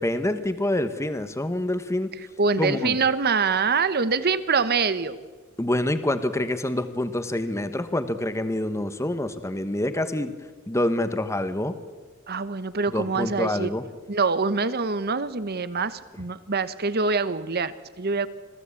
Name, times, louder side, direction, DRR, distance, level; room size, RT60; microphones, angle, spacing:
voice 1, 0.0-2.1 2.6-3.0 5.6-10.3 10.7-11.7 12.9-13.8, left 1 dB, 15° left, 10 dB, 1.1 m, -26 dB
voice 2, 2.4-5.2 12.3-13.7 14.1-18.3, right 4 dB, 50° right, 14 dB, 1.1 m, -25 dB
26.0 x 16.5 x 8.5 m, 1.4 s
head